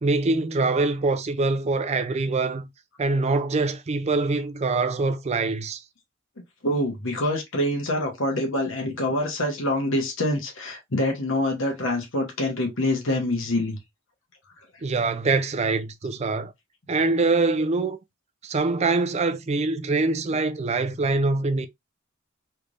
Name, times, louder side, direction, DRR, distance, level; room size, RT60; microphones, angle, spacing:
voice 1, 0.0-2.7 3.0-5.8 14.8-16.5 16.9-18.0 18.4-21.7, right 3 dB, 35° right, 0.4 m, -24 dB
voice 2, 6.6-13.8, left 1 dB, 75° left, 1.1 m, -25 dB
3.3 x 3.2 x 2.5 m
head